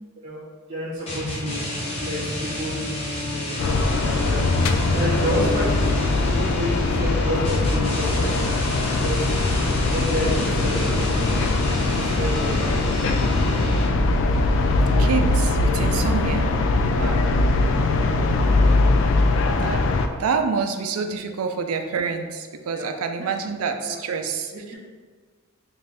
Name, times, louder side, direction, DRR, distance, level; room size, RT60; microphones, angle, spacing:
voice 1, 0.2-2.9 3.2-9.4 9.9-11.5 11.8-12.9 17.0-17.2 22.7-22.9 23.8-24.0 24.5-24.8, equal, 30° right, -8 dB, 0.7 m, -30 dB
sound 1, 1.1-14.1, left 1 dB, 30° left, 0.9 m, -30 dB
Bowed string instrument, 1.2-6.5, equal, ahead, 1.0 m, -37 dB
sound 2, 3.6-20.1, left 2 dB, 60° left, 0.3 m, -21 dB
voice 2, 15.0-16.5 17.0-17.2 19.6-19.8 20.2-24.7, right 5 dB, 90° right, 6 dB, 0.4 m, -27 dB
3.3 x 2.6 x 4.0 m, 1.5 s
head